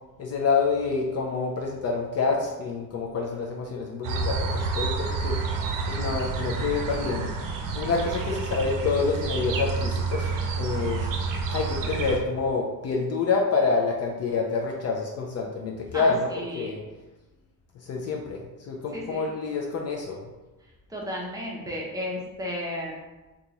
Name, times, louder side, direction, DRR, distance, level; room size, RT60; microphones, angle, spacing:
voice 1, 0.2-5.4 5.8-7.3 7.7-11.1 11.5-16.8 17.7-20.2, left 4 dB, 45° left, 0 dB, 0.4 m, -27 dB
sound 1, 4.0-12.2, right 4 dB, 60° right, 0.5 m, -29 dB
voice 2, 15.9-16.8 18.9-19.2 20.9-22.9, equal, 10° right, -3 dB, 0.6 m, -33 dB
2.9 x 2.3 x 3.8 m, 1.1 s
cardioid pair, 150°, 36 cm